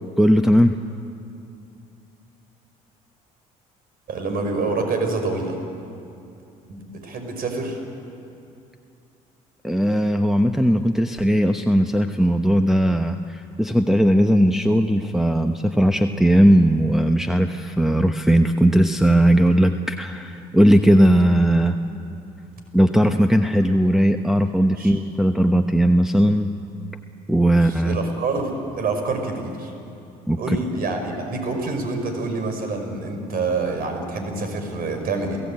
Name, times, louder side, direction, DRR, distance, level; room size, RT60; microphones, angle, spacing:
voice 1, 0.2-0.8 9.6-21.8 22.7-26.5 27.3-28.0 30.3-30.6, equal, ahead, 4 dB, 1.0 m, -18 dB
voice 2, 4.1-5.6 6.7-7.8 24.8-25.0 27.5-29.7 30.4-35.4, right 3 dB, 55° right, 5 dB, 5.4 m, -27 dB
29.0 x 16.5 x 8.7 m, 2.7 s
hypercardioid pair, 70°, 18 cm